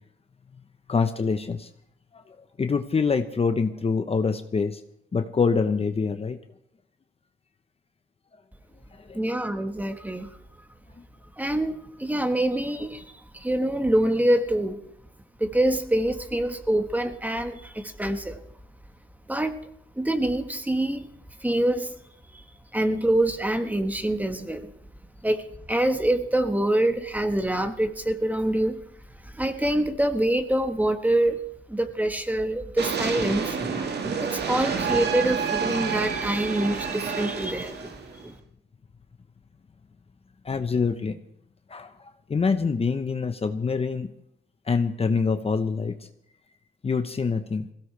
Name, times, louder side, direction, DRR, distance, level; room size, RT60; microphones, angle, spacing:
voice 1, 0.9-1.7 2.1-2.2 2.6-4.8 5.1-6.4 9.0-9.2 40.4-41.2 41.7-44.1 44.7-46.1 46.8-47.7, left 5 dB, 30° left, 1.0 m, -25 dB
voice 2, 9.1-10.3 11.4-13.0 13.3-14.8 15.4-18.4 19.3-19.6 20.0-21.1 21.4-21.9 22.3-22.4 22.7-24.7 25.2-28.8 29.3-31.4 31.7-37.9 38.2-38.3, right 1 dB, 10° right, 1.5 m, -25 dB
sound 1, 32.8-38.2, right 6 dB, 55° right, 2.0 m, -29 dB
21.0 x 16.5 x 3.4 m
cardioid pair, 90°, 20 cm